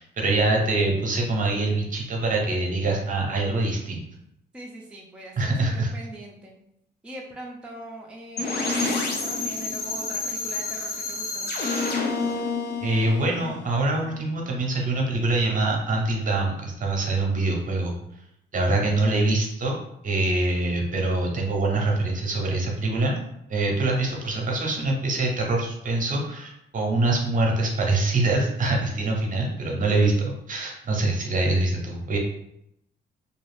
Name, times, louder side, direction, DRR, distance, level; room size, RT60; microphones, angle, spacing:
voice 1, 0.0-4.1 5.4-5.9 12.8-17.9 18.5-19.8 20.0-23.2 23.5-32.2, right 2 dB, 40° right, 0 dB, 0.7 m, -24 dB
voice 2, 4.5-6.6 7.0-11.7, right 1 dB, 5° right, -3 dB, 0.5 m, -41 dB
sound 1, 8.4-14.2, left 3 dB, 50° left, 0.6 m, -29 dB
2.4 x 2.4 x 3.2 m, 0.80 s
cardioid pair, 90°, 20 cm